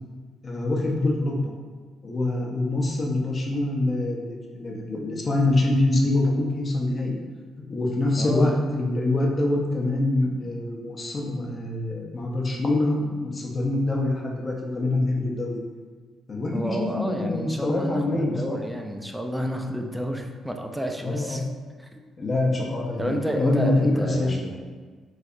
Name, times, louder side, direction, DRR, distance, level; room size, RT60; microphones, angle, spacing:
voice 1, 0.4-1.3 2.0-7.2 7.7-15.6 16.3-18.6 21.0-21.4 22.2-24.4, left 2 dB, 35° left, -1 dB, 0.6 m, -25 dB
voice 2, 8.2-8.7 16.5-21.4 21.8-22.0 23.0-24.7, right 1 dB, 5° right, 3 dB, 0.3 m, -30 dB
3.1 x 2.7 x 2.5 m, 1.5 s
cardioid pair, 90°, 0 cm